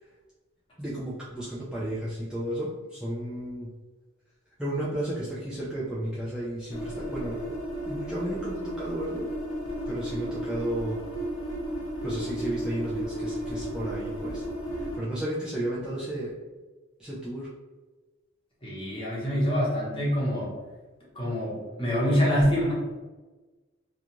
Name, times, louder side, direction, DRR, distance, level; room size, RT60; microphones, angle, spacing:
voice 1, 0.8-3.7 4.6-7.5 7.9-9.3 9.9-11.0 12.0-14.4 14.7-16.3 17.0-17.5, right 1 dB, 5° right, -8 dB, 0.4 m, -33 dB
sound 1, 6.7-15.0, equal, 75° left, 0.6 m, -34 dB
voice 2, 18.6-20.5 21.1-22.7, equal, 25° left, -6 dB, 1.0 m, -25 dB
2.4 x 2.3 x 2.9 m, 1.2 s
head